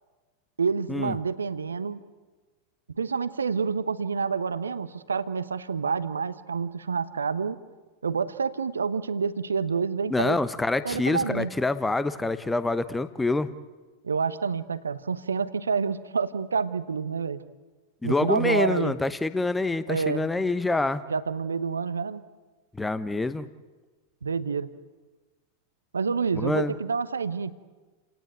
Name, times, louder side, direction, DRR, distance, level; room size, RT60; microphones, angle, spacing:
voice 1, 0.6-2.0 3.0-7.6 8.0-10.4 10.8-11.5 14.0-17.4 18.0-19.0 19.9-20.3 21.1-22.2 24.2-24.7 25.9-27.5, right 5 dB, 75° right, 13 dB, 1.1 m, -28 dB
voice 2, 10.1-13.5 18.0-21.0 22.7-23.5 26.3-26.7, left 2 dB, 10° left, 14 dB, 0.9 m, -26 dB
29.5 x 18.5 x 9.2 m, 1.3 s
figure-of-eight pair, 90°, 0 cm